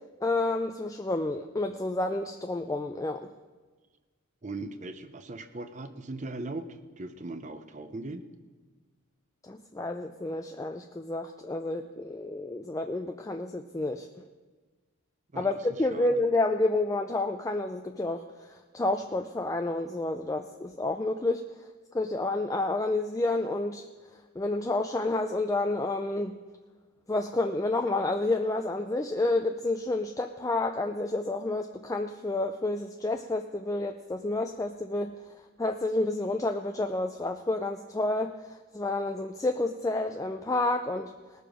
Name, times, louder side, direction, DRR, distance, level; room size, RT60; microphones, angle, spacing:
voice 1, 0.2-3.3 9.4-14.2 15.4-21.4 21.9-23.8 24.4-26.4 27.1-35.2 35.6-41.1, left 2 dB, 15° left, 5 dB, 0.3 m, -30 dB
voice 2, 4.4-8.2 15.3-16.2, right 2 dB, 35° right, 9 dB, 0.6 m, -39 dB
19.5 x 6.8 x 4.9 m, 1.3 s
head